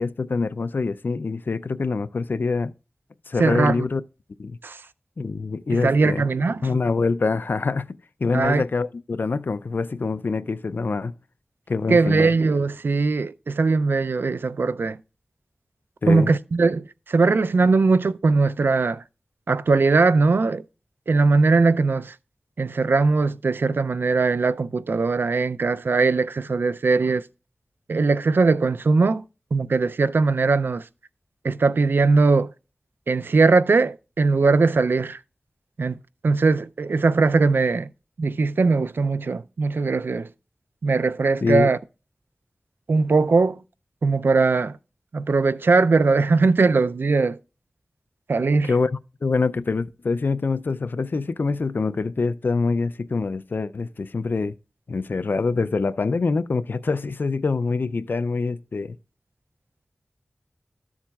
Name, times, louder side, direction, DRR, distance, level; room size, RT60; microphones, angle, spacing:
voice 1, 0.0-2.7 3.3-4.0 4.4-4.6 5.2-6.2 6.6-11.1 11.7-12.3 16.0-16.3 41.4-41.7 48.6-54.5 54.9-59.0, left 4 dB, 70° left, 0.4 m, -25 dB
voice 2, 3.4-3.8 4.6-4.8 5.7-6.7 8.3-8.6 11.9-15.0 16.1-19.0 19.5-20.6 21.1-22.1 22.6-27.2 27.9-29.2 29.5-30.8 31.4-32.5 33.1-35.2 35.8-36.0 36.2-37.9 38.2-40.3 40.8-41.8 42.9-43.6 44.0-44.8 45.1-47.4 48.3-48.7, right 4 dB, 80° right, 0.4 m, -20 dB
13.5 x 7.2 x 2.3 m
wide cardioid pair, 80°, 4 cm